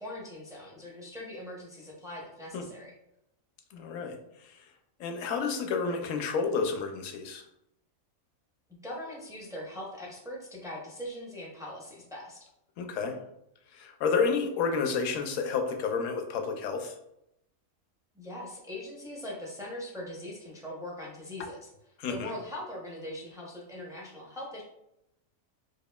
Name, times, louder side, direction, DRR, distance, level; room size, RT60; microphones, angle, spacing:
voice 1, 0.0-2.9 8.7-12.4 18.1-21.7 22.1-24.6, left 1 dB, 5° right, -3 dB, 0.3 m, -41 dB
voice 2, 3.7-4.2 4.4-4.6 5.0-7.4 12.8-13.2 13.7-16.9 22.0-22.3, left 5 dB, 70° left, 4 dB, 0.9 m, -30 dB
4.8 x 2.4 x 2.2 m, 0.81 s
omnidirectional pair, 1.5 m